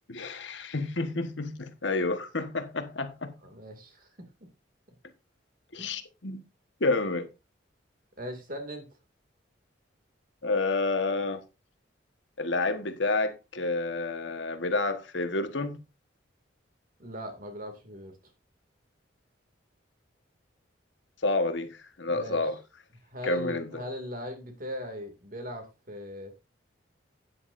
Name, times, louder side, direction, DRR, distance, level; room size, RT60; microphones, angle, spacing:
voice 1, 0.1-3.3 5.7-6.4 6.8-7.3 10.4-11.4 12.4-15.8 21.2-22.6 23.2-23.8, left 3 dB, 70° left, 1.4 m, -29 dB
voice 2, 3.4-4.3 5.8-6.0 8.2-8.9 17.0-18.2 22.1-22.5 23.1-26.3, equal, 45° right, 2.5 m, -39 dB
12.5 x 9.8 x 2.6 m
head